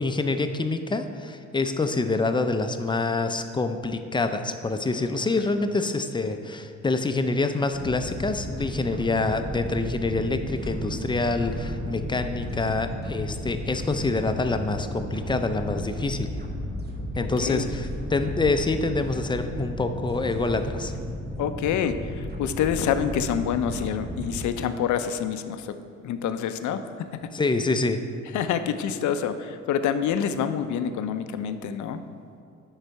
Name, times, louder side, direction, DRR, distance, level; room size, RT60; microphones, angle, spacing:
voice 1, 0.0-16.3 17.2-20.9 27.3-28.0, left 3 dB, 15° left, 8 dB, 0.5 m, -26 dB
sound 1, 7.7-24.5, equal, 35° right, 1.1 m, -34 dB
voice 2, 17.4-17.7 21.4-25.8 26.0-27.3 28.3-32.0, left 8 dB, 70° left, 10 dB, 0.6 m, -27 dB
9.8 x 4.0 x 4.6 m, 2.5 s
cardioid pair, 90°, 30 cm